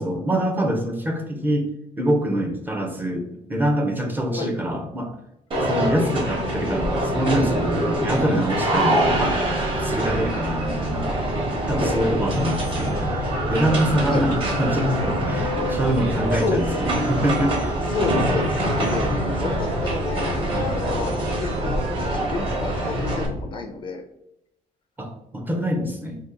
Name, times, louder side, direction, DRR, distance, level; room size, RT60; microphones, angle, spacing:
voice 1, 0.0-1.7 2.0-5.2 5.6-9.4 9.7-11.2 11.7-13.1 13.5-17.8 19.1-19.4 25.0-26.2, right 1 dB, 15° right, 2 dB, 0.6 m, -25 dB
sound 1, 5.5-23.3, right 1 dB, 40° right, 1.1 m, -24 dB
sound 2, 8.9-23.4, right 1 dB, 55° right, 0.7 m, -33 dB
voice 2, 16.3-16.6 17.9-19.1 19.3-20.4 20.7-21.8 22.1-24.0, left 4 dB, 40° left, 4 dB, 0.5 m, -30 dB
2.8 x 2.8 x 3.7 m, 0.83 s
cardioid pair, 140°, 14 cm